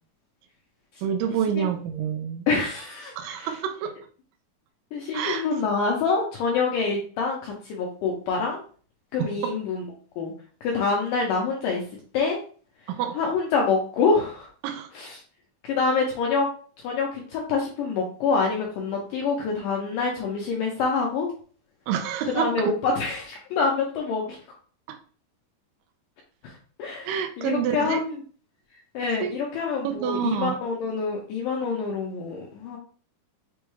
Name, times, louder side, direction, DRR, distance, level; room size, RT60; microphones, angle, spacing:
voice 1, 1.0-2.5 3.2-4.0 5.1-5.5 9.2-9.6 12.9-13.2 14.6-14.9 21.9-22.7 24.9-25.0 27.1-28.0 29.2-29.3 29.8-30.6, right 9 dB, 85° right, 5 dB, 1.9 m, -28 dB
voice 2, 2.5-3.5 4.9-8.6 9.1-9.8 10.2-10.3 10.6-11.8 12.1-12.4 13.2-14.5 15.0-15.2 15.6-16.5 16.8-21.3 22.3-24.4 26.4-26.5 26.8-27.1 27.4-28.1 28.9-32.8, left 4 dB, 80° left, -1 dB, 2.0 m, -26 dB
6.1 x 2.2 x 3.1 m, 0.43 s
omnidirectional pair, 4.4 m